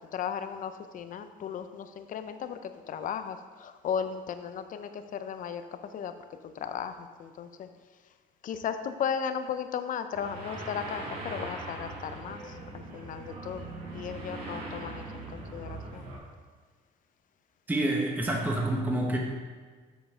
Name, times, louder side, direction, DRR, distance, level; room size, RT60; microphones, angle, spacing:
voice 1, 0.1-5.6 5.9-6.1 6.5-7.7 8.4-16.1, left 7 dB, 50° left, 9 dB, 0.6 m, -36 dB
sound 1, 10.1-16.2, right 2 dB, 65° right, 2.2 m, -41 dB
voice 2, 17.7-19.2, right 1 dB, 10° right, -1 dB, 1.1 m, -27 dB
7.2 x 7.0 x 3.7 m, 1.5 s
cardioid pair, 110°, 17 cm